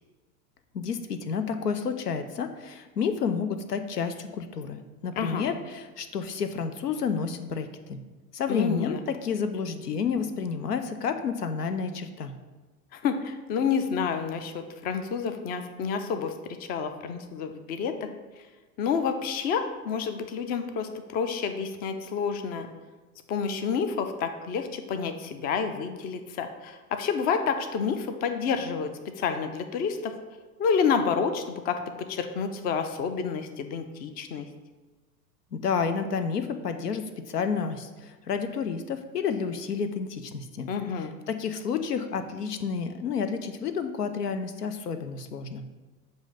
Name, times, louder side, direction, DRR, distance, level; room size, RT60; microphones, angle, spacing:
voice 1, 0.7-8.0 8.3-12.3 35.5-40.7 41.3-45.6, left 6 dB, 90° left, 9 dB, 0.6 m, -30 dB
voice 2, 5.2-5.5 8.5-9.0 12.9-16.3 16.6-18.1 18.4-18.5 18.8-22.7 23.3-28.9 29.2-30.1 30.6-31.8 32.1-34.5 40.7-41.1, left 6 dB, 20° left, 8 dB, 0.3 m, -29 dB
7.1 x 2.6 x 5.5 m, 1.2 s
hypercardioid pair, 90°, 46 cm